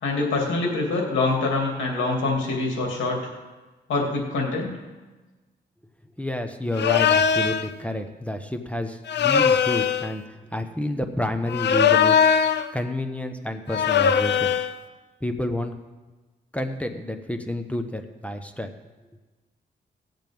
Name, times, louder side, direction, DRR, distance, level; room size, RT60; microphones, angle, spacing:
voice 1, 0.0-3.2 3.9-4.7, left 3 dB, 85° left, -1 dB, 2.7 m, -25 dB
voice 2, 6.2-12.2 12.7-14.5 15.2-15.7 16.5-18.7, left 1 dB, 5° left, 6 dB, 1.1 m, -29 dB
sound 1, 6.7-7.7 9.1-10.1 11.5-12.7 13.7-14.7, left 7 dB, 65° left, 0.7 m, -20 dB
18.5 x 7.7 x 3.6 m, 1.2 s
supercardioid pair, 50°, 19 cm